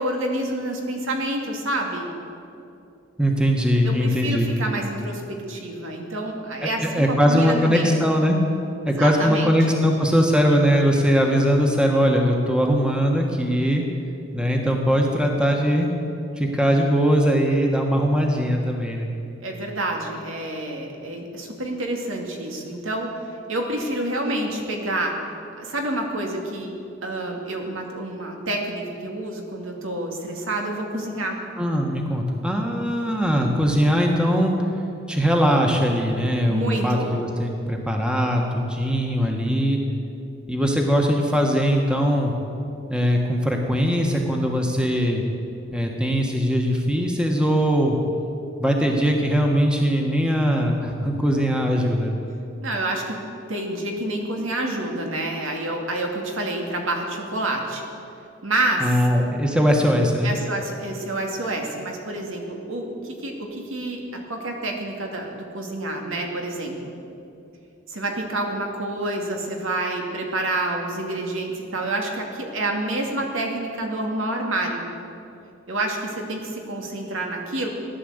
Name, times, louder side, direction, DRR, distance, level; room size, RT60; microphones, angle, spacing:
voice 1, 0.0-2.1 3.8-7.9 8.9-9.8 19.4-23.2 23.5-25.2 25.6-26.7 27.0-31.4 36.5-37.1 52.6-53.2 53.5-57.8 58.4-58.8 60.2-66.9 67.9-74.8 75.7-77.7, right 1 dB, 85° right, 1 dB, 2.4 m, -28 dB
voice 2, 3.2-4.5 6.8-8.4 8.8-13.8 14.3-15.9 16.4-19.1 31.6-34.6 35.1-39.8 40.5-42.3 42.9-45.2 45.7-48.0 48.6-52.1 58.8-60.3, equal, 5° right, 1 dB, 1.5 m, -21 dB
15.5 x 11.5 x 8.1 m, 2.7 s
head